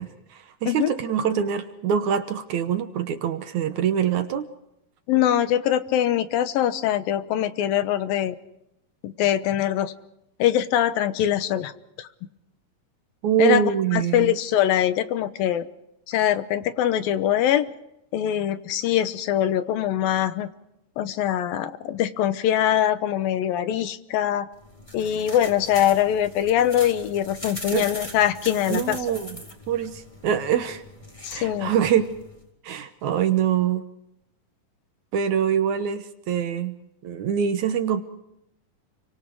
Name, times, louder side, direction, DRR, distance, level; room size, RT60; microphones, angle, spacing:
voice 1, 0.0-4.5 13.2-14.4 27.7-27.9 28.7-29.4 29.7-30.8 31.3-32.1 32.6-33.8 35.1-36.8 37.0-38.0, right 8 dB, 65° right, 9 dB, 2.2 m, -24 dB
voice 2, 5.1-8.4 9.0-9.9 10.4-11.7 12.0-12.1 13.4-15.7 16.1-17.7 18.1-20.5 21.0-24.5 24.9-29.0 31.2-31.7, left 11 dB, 90° left, 11 dB, 2.9 m, -23 dB
sound 1, 24.5-32.4, left 1 dB, 10° left, 3.7 m, -41 dB
29.5 x 24.5 x 4.8 m, 0.82 s
omnidirectional pair, 4.0 m